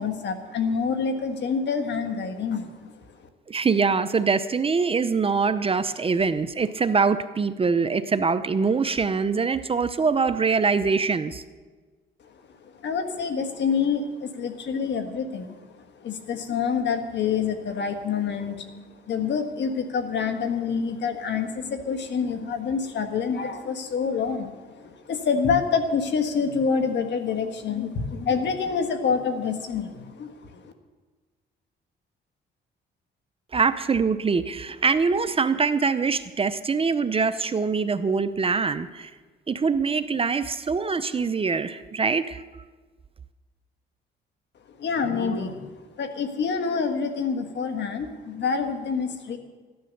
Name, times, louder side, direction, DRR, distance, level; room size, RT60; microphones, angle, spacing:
voice 1, 0.0-3.0 12.2-12.3 12.6-30.7 44.8-49.4, left 5 dB, 65° left, 7 dB, 1.5 m, -27 dB
voice 2, 3.5-11.4 33.5-39.1 39.5-42.4, right 5 dB, 30° right, 12 dB, 0.6 m, -23 dB
13.5 x 10.5 x 6.6 m, 1.4 s
cardioid pair, 90°, 20 cm